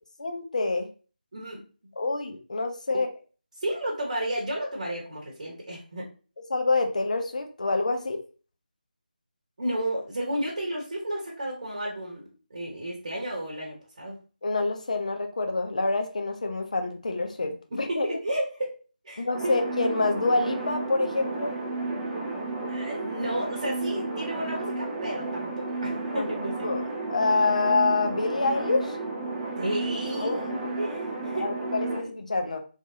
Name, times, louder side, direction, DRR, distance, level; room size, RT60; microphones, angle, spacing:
voice 1, 0.2-0.9 2.0-3.1 6.5-8.2 14.4-18.2 19.2-21.5 26.1-26.3 26.6-26.8 27.1-29.0 30.2-30.7 31.3-32.6, left 3 dB, 50° left, 4 dB, 0.7 m, -27 dB
voice 2, 3.6-6.1 9.6-14.2 17.7-18.8 19.0-19.6 22.7-26.7 29.6-30.5 30.8-32.1, right 1 dB, 40° right, -2 dB, 1.0 m, -32 dB
sound 1, 19.3-32.0, right 3 dB, 5° right, 0.3 m, -32 dB
3.4 x 3.3 x 2.7 m, 0.37 s
figure-of-eight pair, 155°, 5 cm